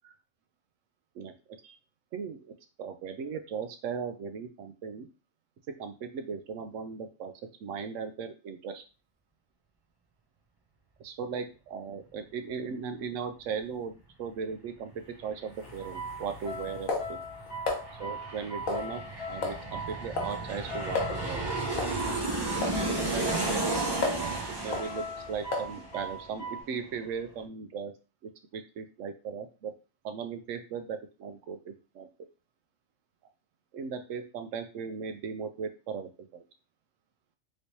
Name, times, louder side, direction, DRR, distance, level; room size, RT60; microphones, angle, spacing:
voice 1, 2.1-2.5 2.8-5.1 5.8-7.3 7.6-8.8 11.0-13.9 14.2-14.9 15.2-17.2 18.0-19.0 19.3-21.4 22.8-23.8 24.1-24.4 24.6-27.9 28.2-29.7 30.0-32.1 33.7-36.4, right 6 dB, 75° right, 8 dB, 0.9 m, -37 dB
Aircraft, 14.9-15.0 15.3-26.6 26.9-27.0, right 2 dB, 35° right, 0.4 m, -34 dB
sound 1, 15.6-17.8 18.7-19.1 19.4-19.6 19.9-20.4 20.6-20.7 20.9-21.2 21.8-22.0 22.6-22.8 23.3-24.3 24.7-24.9 25.5-25.8, left 4 dB, 90° left, 1.3 m, -33 dB
sound 2, 15.8-26.6, equal, 55° left, 1.2 m, -40 dB
3.3 x 3.1 x 2.7 m, 0.32 s
omnidirectional pair, 1.4 m